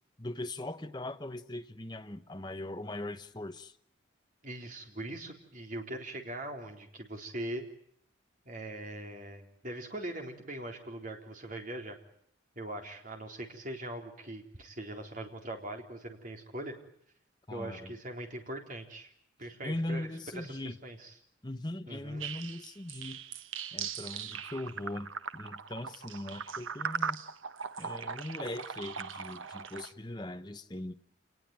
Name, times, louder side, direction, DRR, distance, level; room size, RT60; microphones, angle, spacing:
voice 1, 0.2-3.7 17.5-17.9 19.6-20.8 21.4-23.2 23.7-27.2 27.8-30.9, left 1 dB, 20° left, 8 dB, 1.1 m, -40 dB
voice 2, 4.4-7.6 8.5-12.0 12.6-16.7 17.5-19.1 19.4-20.1 20.3-21.1 21.9-22.2, right 1 dB, 40° right, 3 dB, 3.9 m, -41 dB
sound 1, 22.2-29.9, right 6 dB, 85° right, 1.1 m, -39 dB
28.0 x 20.0 x 9.2 m, 0.67 s
head